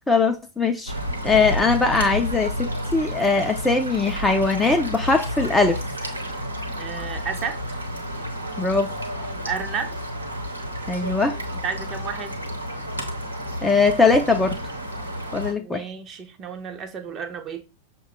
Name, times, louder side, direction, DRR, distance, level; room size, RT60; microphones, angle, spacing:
voice 1, 0.1-0.9 1.2-5.8 8.6-8.9 10.9-11.4 13.6-14.5 15.3-15.8, left 4 dB, 10° left, 0.5 m, -20 dB
sound 1, 0.9-15.5, equal, 85° right, 0.9 m, -31 dB
voice 2, 6.8-7.8 9.5-9.9 11.5-12.4 15.6-17.6, right 6 dB, 30° right, 0.7 m, -32 dB
6.2 x 2.2 x 3.6 m
figure-of-eight pair, 90°, 0 cm